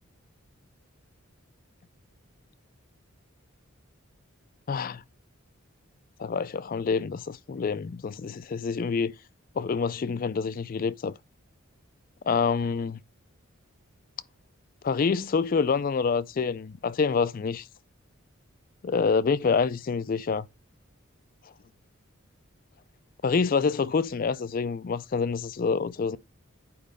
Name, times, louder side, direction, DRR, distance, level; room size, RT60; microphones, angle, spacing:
voice 1, 4.7-5.0 6.2-9.1 9.6-11.1 12.2-13.0 14.8-17.7 18.8-20.5 23.2-26.2, left 5 dB, 40° left, 0.3 m, -27 dB
8.5 x 5.0 x 5.2 m
head